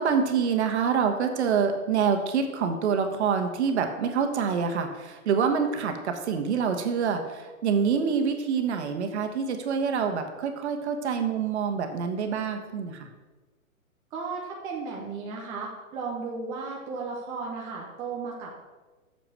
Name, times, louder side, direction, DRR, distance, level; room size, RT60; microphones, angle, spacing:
voice 1, 0.0-13.1, right 6 dB, 50° right, 6 dB, 1.3 m, -26 dB
voice 2, 14.1-18.5, right 4 dB, 10° right, -2 dB, 0.4 m, -35 dB
6.9 x 6.0 x 6.5 m, 1.2 s
hypercardioid pair, 135°, 42 cm